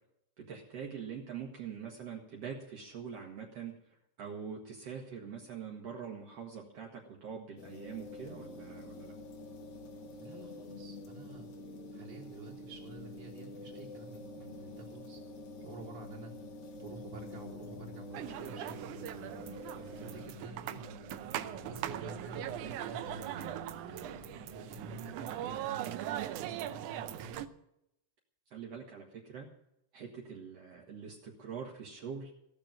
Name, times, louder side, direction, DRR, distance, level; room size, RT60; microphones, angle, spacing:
voice 1, 0.4-9.1 28.5-29.5 29.9-32.3, right 6 dB, 60° right, 0 dB, 2.4 m, -44 dB
sound 1, 7.6-20.3, left 2 dB, 75° left, 3.0 m, -47 dB
voice 2, 10.2-11.5 11.9-15.2 15.6-16.3 16.7-19.3 20.0-20.9 21.5-25.9 26.3-27.4, right 3 dB, 30° right, -3 dB, 3.2 m, -49 dB
sound 2, 17.5-26.4, left 5 dB, 60° left, 1.3 m, -55 dB
sound 3, 18.1-27.5, right 12 dB, 90° right, 2.2 m, -40 dB
16.5 x 6.8 x 9.1 m, 0.81 s
omnidirectional pair, 3.4 m